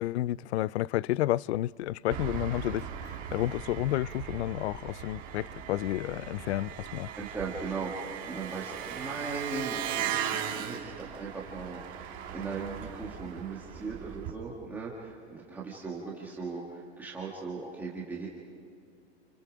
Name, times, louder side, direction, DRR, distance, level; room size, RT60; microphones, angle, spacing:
voice 1, 0.0-7.1, left 15 dB, 75° left, 0.5 m, -31 dB
Engine, 2.1-14.3, right 9 dB, 25° right, 1.7 m, -38 dB
voice 2, 7.2-18.3, right 4 dB, 5° right, 1.5 m, -38 dB
29.0 x 29.0 x 5.0 m
supercardioid pair, 175°, 33 cm